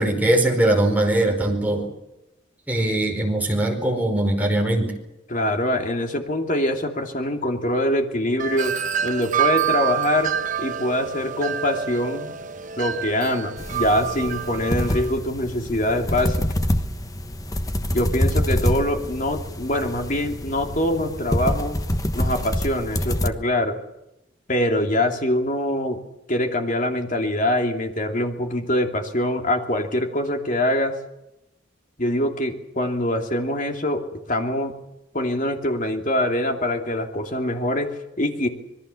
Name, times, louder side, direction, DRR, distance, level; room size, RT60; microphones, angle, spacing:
voice 1, 0.0-1.9 2.7-4.9, right 1 dB, 10° right, 1 dB, 5.0 m, -21 dB
voice 2, 5.3-8.8 9.0-12.4 12.8-16.5 17.9-21.8 22.1-23.8 24.5-26.0 26.3-31.0 32.0-34.7 35.1-38.5, left 1 dB, 40° left, 4 dB, 2.8 m, -24 dB
Wind chime, 8.4-15.1, right 9 dB, 40° right, 0.9 m, -27 dB
sound 1, 13.6-23.3, equal, 15° left, 1.2 m, -26 dB
26.0 x 21.5 x 7.1 m, 0.90 s
head